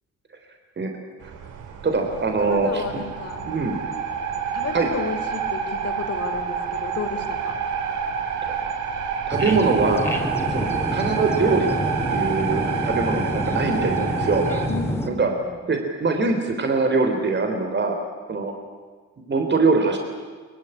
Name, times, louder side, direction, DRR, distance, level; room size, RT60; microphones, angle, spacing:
sound 1, 1.2-14.7, right 6 dB, 85° right, 3.2 m, -28 dB
voice 1, 1.8-3.0 3.5-3.8 4.7-4.9 8.4-8.7 9.3-10.1 10.5-10.7 10.9-11.7 12.1-14.4 15.1-15.3 15.7-18.0 18.3-18.5 19.2-20.0, right 4 dB, 35° right, 4 dB, 3.5 m, -23 dB
voice 2, 2.4-3.5 4.5-7.6 14.7-15.6, left 5 dB, 55° left, 8 dB, 3.4 m, -33 dB
sound 2, 9.3-15.1, equal, 10° left, 4.3 m, -28 dB
22.5 x 22.0 x 10.0 m, 1.5 s
cardioid pair, 90°, 30 cm